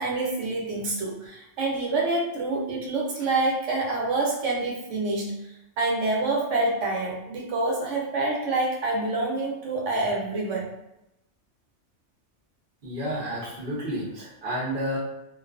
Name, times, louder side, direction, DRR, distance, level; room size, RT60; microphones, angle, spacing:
voice 1, 0.0-5.4 5.8-10.7, right 2 dB, 80° right, -1 dB, 1.0 m, -27 dB
voice 2, 12.8-15.0, equal, 55° right, -5 dB, 0.9 m, -30 dB
2.5 x 2.3 x 2.3 m, 0.87 s
omnidirectional pair, 1.2 m